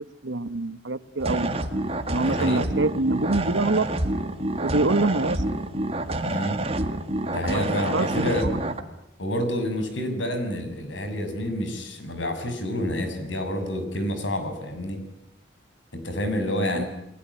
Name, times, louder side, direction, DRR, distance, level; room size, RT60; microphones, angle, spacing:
voice 1, 0.2-1.5 2.1-3.9 4.6-5.4 6.1-6.3 7.5-7.6 7.9-8.6 16.7-16.8, right 2 dB, 80° right, 14 dB, 1.2 m, -25 dB
sound 1, 1.2-8.8, right 1 dB, 30° right, 2.0 m, -28 dB
voice 2, 2.2-2.6 6.2-6.6 7.3-8.5 9.2-15.0 15.9-16.9, left 1 dB, 85° left, 8 dB, 6.8 m, -28 dB
30.0 x 20.5 x 9.8 m, 0.82 s
head